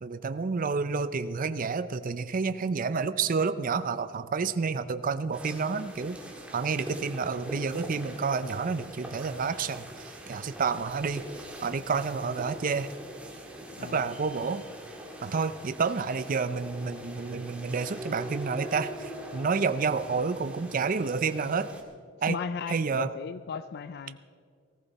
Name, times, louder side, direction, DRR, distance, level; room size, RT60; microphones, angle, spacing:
voice 1, 0.0-6.2 6.5-12.9 13.9-14.6 15.2-21.7 22.2-22.4 22.7-23.1, right 5 dB, 45° right, 12 dB, 0.5 m, -29 dB
sound 1, 5.3-21.8, right 1 dB, 5° right, 2.0 m, -43 dB
voice 2, 22.3-24.3, left 5 dB, 55° left, 13 dB, 0.4 m, -36 dB
19.5 x 14.5 x 4.1 m, 2.1 s
head